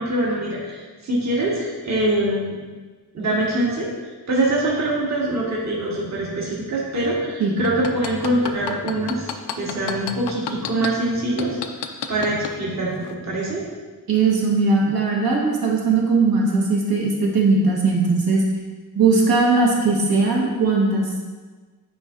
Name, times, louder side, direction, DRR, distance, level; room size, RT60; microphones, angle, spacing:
voice 1, 0.0-2.6 3.1-3.9 4.3-9.3 9.6-13.6, right 1 dB, 45° right, -5 dB, 1.5 m, -24 dB
sound 1, 7.6-10.9 11.4-12.5 13.0-13.1, left 9 dB, 80° left, 0.5 m, -29 dB
voice 2, 14.1-18.4 18.9-21.1, right 3 dB, 60° right, -2 dB, 1.4 m, -19 dB
9.4 x 4.5 x 2.6 m, 1.4 s
wide cardioid pair, 140°, 40 cm